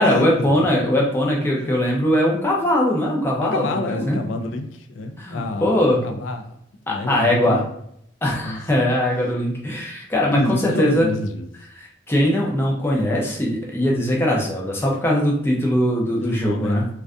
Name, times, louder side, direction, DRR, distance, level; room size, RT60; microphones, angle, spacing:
voice 1, 0.0-4.2 5.2-6.0 6.9-7.6 8.2-11.1 11.8-16.9, left 1 dB, 10° left, -2 dB, 0.4 m, -21 dB
voice 2, 3.4-6.6 6.9-7.7 8.4-8.6 10.3-11.5 16.2-16.9, left 2 dB, 90° left, 6 dB, 0.3 m, -27 dB
2.5 x 2.2 x 2.3 m, 0.70 s
head